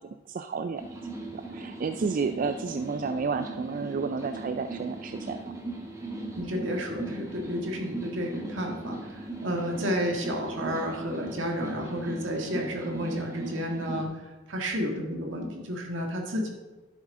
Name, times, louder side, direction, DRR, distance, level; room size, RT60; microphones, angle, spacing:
voice 1, 0.3-0.8 1.3-5.5, right 5 dB, 45° right, 8 dB, 0.3 m, -31 dB
sound 1, 0.8-14.0, right 2 dB, 15° right, 1.3 m, -38 dB
voice 2, 6.4-9.0 9.4-14.1 14.5-16.5, equal, 75° right, 1 dB, 1.7 m, -31 dB
11.0 x 7.4 x 3.7 m, 1.2 s
head